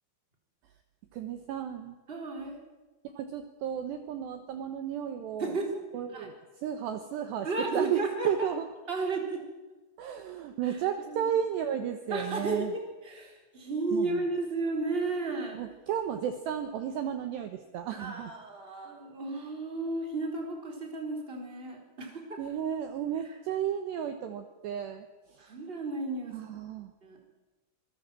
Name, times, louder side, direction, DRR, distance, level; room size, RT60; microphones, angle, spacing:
voice 1, 1.1-2.0 3.2-5.5 5.9-8.7 10.0-12.7 13.9-14.2 15.6-18.3 22.4-25.4 26.3-26.9, right 9 dB, 70° right, 7 dB, 2.9 m, -33 dB
voice 2, 2.1-2.6 5.4-5.8 6.1-6.3 7.4-8.5 8.9-9.4 10.6-10.8 11.1-11.3 12.1-15.6 18.0-22.4 25.4-26.5 27.0-27.2, right 3 dB, 10° right, 1 dB, 3.4 m, -33 dB
25.5 x 21.5 x 7.6 m, 1.2 s
omnidirectional pair, 5.9 m